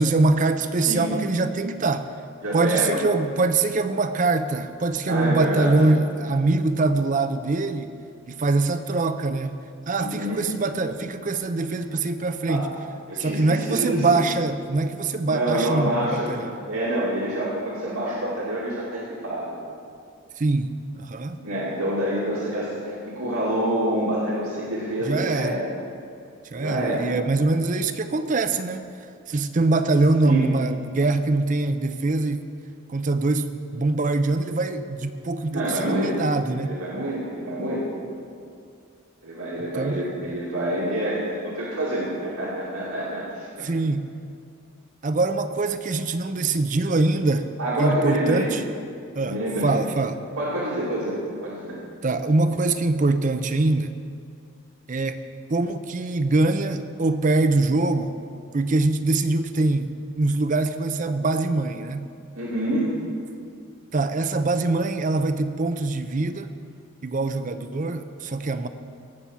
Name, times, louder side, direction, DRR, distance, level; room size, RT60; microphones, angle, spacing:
voice 1, 0.0-2.1 2.5-7.9 8.3-9.6 9.9-12.7 13.2-16.6 20.4-21.4 25.1-25.5 26.5-28.9 29.3-32.5 32.9-36.7 39.8-40.0 43.6-44.1 45.0-47.5 47.8-48.6 49.1-50.2 52.0-53.9 54.9-55.2 55.5-58.2 58.5-62.1 63.9-66.5 67.0-68.7, right 3 dB, 35° right, 10 dB, 0.5 m, -23 dB
voice 2, 2.4-3.0 5.0-5.8 10.0-10.4 12.4-12.7 13.1-14.2 15.3-16.3 16.7-19.6 21.4-25.7 26.5-27.1 30.2-30.4 35.5-36.2 36.6-37.9 39.2-43.7 47.6-48.5 49.2-49.8 50.4-51.8 62.4-62.9, right 1 dB, 85° right, -7 dB, 2.4 m, -27 dB
17.5 x 6.0 x 7.0 m, 2.4 s
head